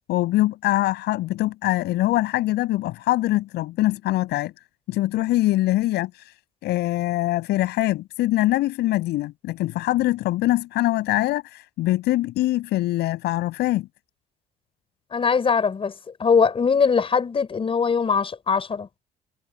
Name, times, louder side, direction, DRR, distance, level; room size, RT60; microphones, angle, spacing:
voice 1, 0.1-4.5 4.9-6.3 6.6-13.9, left 16 dB, 80° left, 7.6 m, -23 dB
voice 2, 15.1-15.9 16.2-18.9, left 5 dB, 35° left, 5.5 m, -21 dB
cardioid pair, 110°, 17 cm